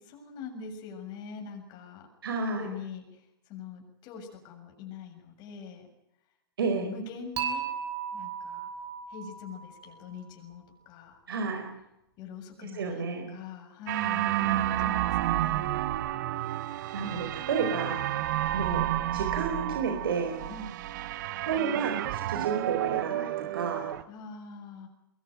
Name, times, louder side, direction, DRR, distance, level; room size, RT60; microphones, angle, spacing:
voice 1, 0.0-2.1 2.5-5.9 6.7-7.7 8.1-8.7 9.1-11.2 12.2-13.0 13.3-15.7 20.5-20.7 24.1-24.9, left 6 dB, 35° left, 2 dB, 7.2 m, -43 dB
voice 2, 2.2-2.7 6.6-6.9 11.3-11.6 12.6-13.4 16.9-18.0 18.5-18.9 19.1-20.3 21.4-23.9, right 5 dB, 70° right, 4 dB, 4.8 m, -31 dB
Dishes pots and pans / Chink clink, 7.4-10.5, right 8 dB, 35° right, 6.7 m, -36 dB
sound 1, 13.9-24.0, right 14 dB, 55° right, 1.3 m, -30 dB
23.5 x 21.5 x 9.2 m, 0.84 s
hypercardioid pair, 120°, 12 cm